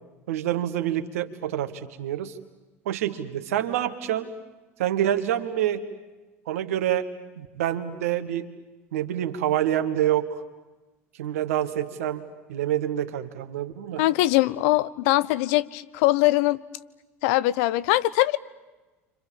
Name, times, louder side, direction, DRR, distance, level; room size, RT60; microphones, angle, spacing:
voice 1, 0.3-2.3 2.9-4.3 4.8-5.8 6.5-7.1 7.4-8.4 8.9-10.3 11.2-14.0, right 11 dB, 75° right, 7 dB, 2.0 m, -27 dB
voice 2, 14.0-16.6 17.2-18.4, left 17 dB, 65° left, 17 dB, 0.9 m, -22 dB
30.0 x 26.0 x 7.4 m, 1.2 s
hypercardioid pair, 70°, 8 cm